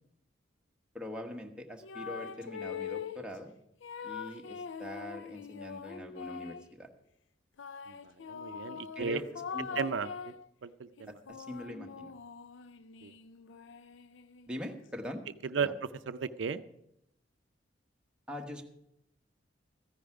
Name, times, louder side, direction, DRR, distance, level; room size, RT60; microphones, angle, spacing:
voice 1, 0.9-3.5 4.0-6.9 8.9-9.3 9.5-9.8 11.4-12.1 14.5-15.2 15.6-15.7 18.3-18.6, left 1 dB, 5° right, 1 dB, 1.1 m, -42 dB
sound 1, 1.8-3.3 3.8-6.7 7.6-10.5 11.0-14.6, left 6 dB, 90° left, 0.5 m, -43 dB
voice 2, 8.3-9.2 9.8-10.3 10.6-11.1 13.0-13.1 15.4-15.7 16.1-16.6, right 6 dB, 85° right, 12 dB, 0.5 m, -34 dB
14.5 x 10.5 x 4.8 m, 0.79 s
head